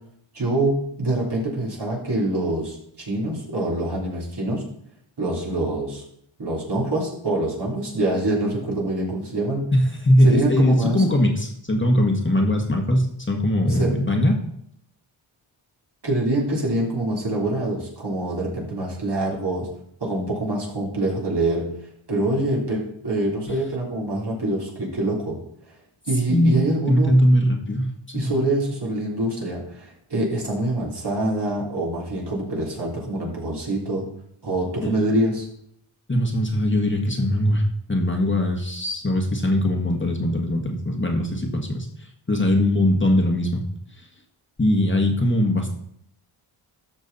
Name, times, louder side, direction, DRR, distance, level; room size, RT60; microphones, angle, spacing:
voice 1, 0.3-4.6 5.2-6.0 6.4-9.7 10.2-11.0 13.6-13.9 16.0-19.7 20.0-21.7 22.1-25.4 26.1-27.2 28.1-34.0 34.4-35.5, right 1 dB, 50° right, -3 dB, 3.5 m, -25 dB
voice 2, 9.7-14.4 26.3-26.5 26.9-28.3 34.8-35.0 36.1-37.6 37.9-43.6 44.6-45.8, left 1 dB, 25° left, 2 dB, 1.6 m, -21 dB
12.5 x 6.2 x 4.1 m, 0.71 s
cardioid pair, 60°, 50 cm